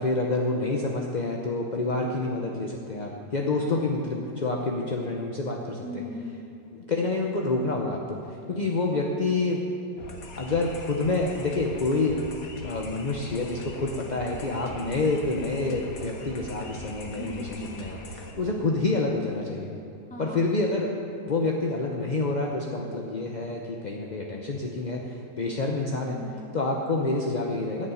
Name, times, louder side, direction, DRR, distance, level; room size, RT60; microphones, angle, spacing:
voice 1, 0.0-5.8 6.7-9.6 10.4-12.2 12.6-17.5 17.8-18.0 18.4-19.7 20.2-20.9 21.3-26.2 26.5-27.9, left 3 dB, 40° left, 0 dB, 0.6 m, -28 dB
voice 2, 5.8-6.5 8.9-9.2 17.2-17.9 20.1-20.4 26.1-26.6, left 1 dB, 5° left, -2 dB, 1.7 m, -39 dB
sound 1, 10.0-18.3, left 1 dB, 75° left, 2.0 m, -41 dB
13.5 x 7.1 x 9.2 m, 2.5 s
omnidirectional pair, 1.9 m